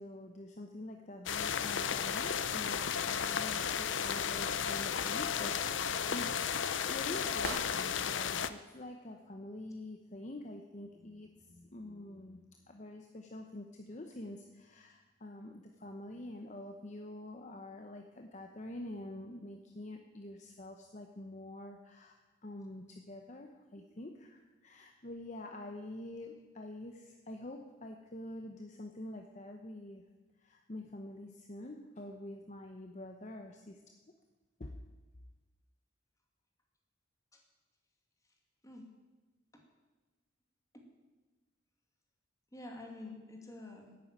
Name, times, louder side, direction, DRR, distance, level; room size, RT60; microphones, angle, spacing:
voice 1, 0.0-30.0 30.4-33.8 34.6-34.8, left 1 dB, 35° left, 4 dB, 0.8 m, -46 dB
sound 1, 1.3-8.5, left 7 dB, 65° left, 0.6 m, -34 dB
sound 2, 5.0-8.1, right 4 dB, 85° right, 1.3 m, -49 dB
voice 2, 42.5-44.0, left 2 dB, 15° left, 1 dB, 2.2 m, -48 dB
11.0 x 9.4 x 9.0 m, 1.2 s
head